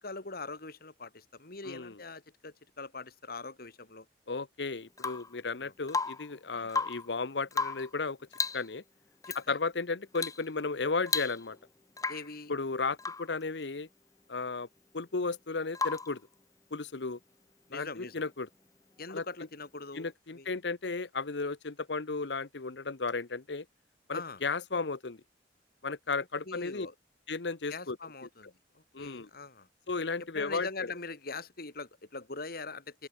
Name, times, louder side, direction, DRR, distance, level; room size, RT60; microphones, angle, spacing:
voice 1, 0.0-4.1 5.6-5.7 6.5-6.7 9.2-9.6 12.1-12.5 17.7-18.1 19.0-20.5 24.1-24.4 26.4-26.9 27.7-29.7 30.2-33.1, left 3 dB, 55° left, 2.9 m, -42 dB
voice 2, 1.6-1.9 4.3-8.2 8.5-8.8 9.5-11.6 12.5-13.9 14.3-14.7 14.9-16.2 16.7-17.2 17.7-18.5 19.1-19.2 19.9-23.6 24.1-25.2 25.8-26.9 27.3-28.0 28.9-29.3 29.9-30.7, left 4 dB, 70° left, 1.0 m, -34 dB
Rain / Water tap faucet / Drip, 5.0-5.4 5.9-6.3 6.6-7.1 7.5-7.9 8.3-8.7 9.2-9.4 10.1-10.4 10.7-10.8 11.1-11.6 12.0-12.3 13.0-13.3 15.7-16.2 18.1-18.2, left 4 dB, 20° left, 0.9 m, -34 dB
open air
head